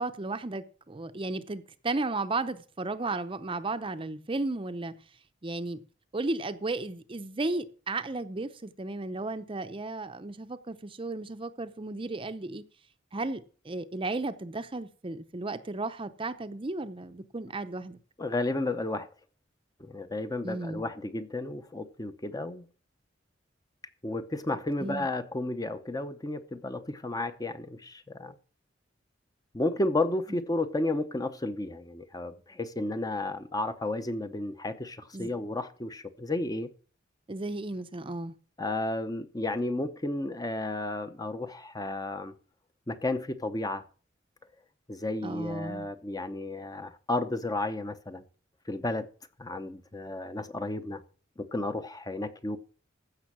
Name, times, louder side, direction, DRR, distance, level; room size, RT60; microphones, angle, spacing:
voice 1, 0.0-4.9 5.4-5.8 6.1-12.6 13.1-18.0 20.4-20.8 24.8-25.1 35.1-35.3 37.3-38.3 45.2-45.9, right 2 dB, 30° right, 0.7 m, -34 dB
voice 2, 18.2-19.1 19.8-22.7 24.0-28.3 29.5-36.7 38.6-42.3 42.9-43.8 44.9-48.2 48.7-49.1 49.4-51.0 51.4-52.6, left 2 dB, 20° left, 0.8 m, -32 dB
15.0 x 6.3 x 6.0 m
head